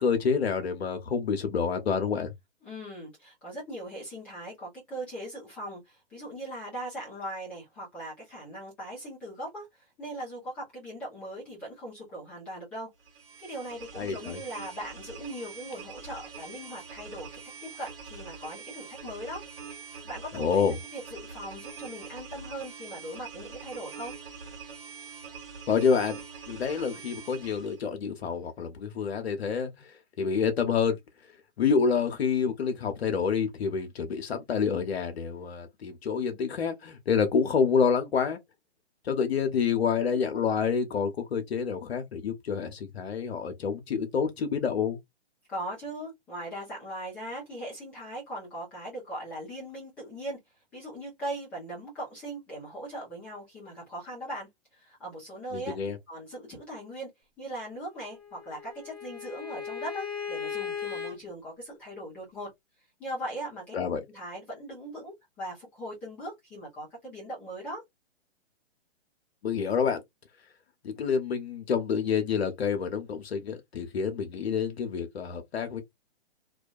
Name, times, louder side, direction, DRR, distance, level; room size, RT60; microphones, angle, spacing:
voice 1, 0.0-2.3 14.0-14.4 20.3-20.8 25.7-26.2 26.5-31.0 31.6-38.4 39.0-45.0 55.5-56.0 63.7-64.0 69.4-70.0 70.8-75.8, left 6 dB, 70° left, 0.7 m, -28 dB
voice 2, 2.6-12.9 13.4-17.3 17.8-19.4 20.0-24.1 45.5-50.4 50.7-55.8 56.1-57.1 57.4-62.5 63.0-63.7 64.1-67.8, right 1 dB, 5° left, 0.3 m, -39 dB
sound 1, 13.0-27.8, right 5 dB, 60° right, 1.2 m, -44 dB
Bowed string instrument, 58.0-61.1, left 6 dB, 25° left, 0.9 m, -37 dB
2.3 x 2.1 x 2.6 m
hypercardioid pair, 130°, 33 cm